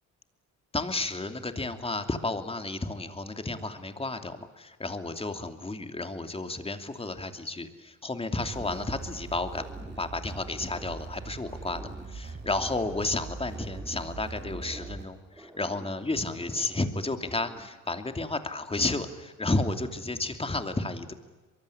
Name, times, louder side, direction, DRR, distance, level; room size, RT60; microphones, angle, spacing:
voice 1, 0.7-9.6 10.0-11.8 12.1-21.1, left 2 dB, 20° left, 7 dB, 2.8 m, -32 dB
sound 1, 8.3-15.1, right 4 dB, 35° right, 4.3 m, -41 dB
sound 2, 8.5-9.2 9.4-11.1 11.4-13.1 13.4-15.1 15.3-16.9 17.2-17.8, equal, 5° right, 3.7 m, -50 dB
23.5 x 23.0 x 10.0 m, 1.2 s
cardioid pair, 90°, 30 cm